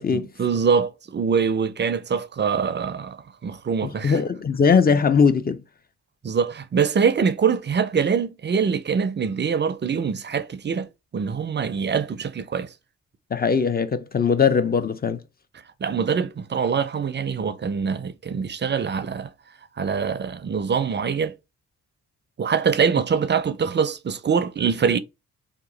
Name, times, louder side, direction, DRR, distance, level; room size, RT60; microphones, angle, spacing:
voice 1, 0.1-4.2 6.2-10.9 11.1-12.7 15.8-19.3 19.8-21.3 22.4-25.0, right 6 dB, 30° right, 0.5 m, -24 dB
voice 2, 3.8-5.6 13.3-15.2, left 6 dB, 25° left, 0.5 m, -20 dB
2.9 x 2.3 x 3.8 m
supercardioid pair, 45°, 36 cm